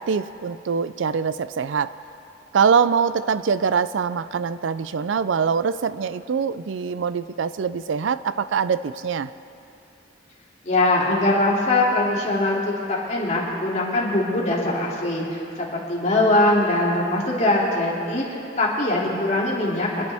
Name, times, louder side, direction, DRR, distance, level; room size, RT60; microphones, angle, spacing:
voice 1, 0.0-1.9 2.5-9.3, right 6 dB, 80° right, 15 dB, 0.4 m, -23 dB
voice 2, 10.6-20.1, left 2 dB, 40° left, -4 dB, 2.6 m, -22 dB
25.5 x 11.0 x 3.5 m, 2.7 s
head